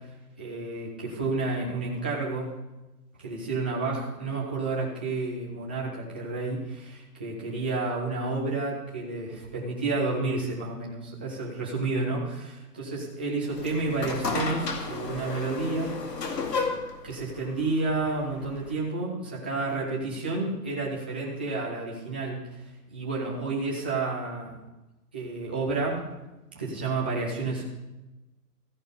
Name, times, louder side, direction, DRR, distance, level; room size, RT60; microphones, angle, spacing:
voice 1, 0.4-2.5 3.2-16.0 16.3-16.5 17.0-24.6 25.1-26.0 26.5-27.7, right 3 dB, 5° right, -5 dB, 0.5 m, -30 dB
sound 1, 13.5-18.8, left 4 dB, 90° left, 2.6 m, -33 dB
14.5 x 10.5 x 5.1 m, 1.0 s
hypercardioid pair, 160°, 48 cm